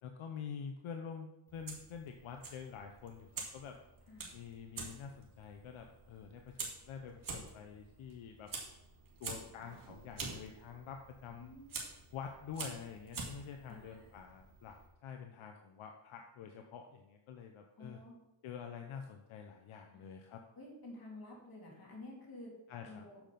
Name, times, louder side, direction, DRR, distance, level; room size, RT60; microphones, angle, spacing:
voice 1, 0.0-3.8 4.3-8.5 9.2-11.5 12.1-18.0 18.4-20.4 22.7-23.1, left 7 dB, 80° left, 4 dB, 0.8 m, -47 dB
Fire, 1.5-14.9, right 4 dB, 45° right, 2.2 m, -48 dB
voice 2, 11.3-11.8 13.7-14.0 17.8-18.1 19.9-20.0 20.5-22.5 22.8-23.2, left 2 dB, 45° left, -2 dB, 3.4 m, -51 dB
7.1 x 5.9 x 5.2 m, 0.92 s
cardioid pair, 90°, 48 cm